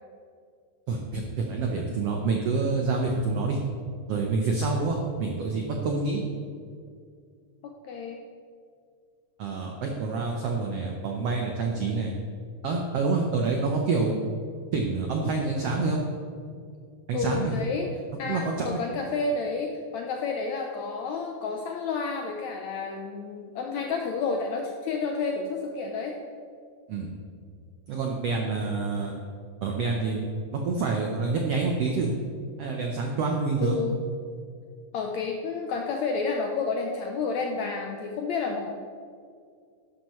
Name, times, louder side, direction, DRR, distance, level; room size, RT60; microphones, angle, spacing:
voice 1, 0.9-3.6 4.1-6.2 9.4-12.1 12.6-14.2 14.7-16.0 17.1-17.6 18.2-18.8 26.9-27.1 27.9-29.1 29.6-30.3 30.6-32.1 32.6-33.8, right 4 dB, 80° right, 1 dB, 1.4 m, -27 dB
voice 2, 7.6-8.2 17.1-17.9 18.2-26.1 33.6-34.0 34.9-38.7, left 4 dB, 75° left, 1 dB, 1.6 m, -30 dB
12.0 x 11.5 x 3.1 m, 2.2 s
omnidirectional pair, 4.0 m